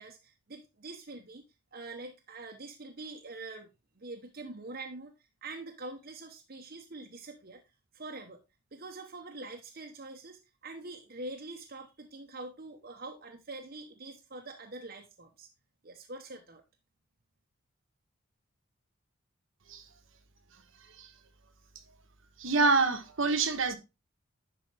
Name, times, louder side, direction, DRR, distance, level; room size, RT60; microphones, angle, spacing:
voice 1, 0.0-1.4 1.7-3.7 4.0-5.1 5.4-7.6 7.9-8.4 8.7-15.5 15.8-16.6, right 2 dB, 45° right, 0.8 m, -44 dB
voice 2, 22.4-23.8, right 3 dB, 65° right, 1.1 m, -26 dB
10.5 x 4.7 x 3.3 m
head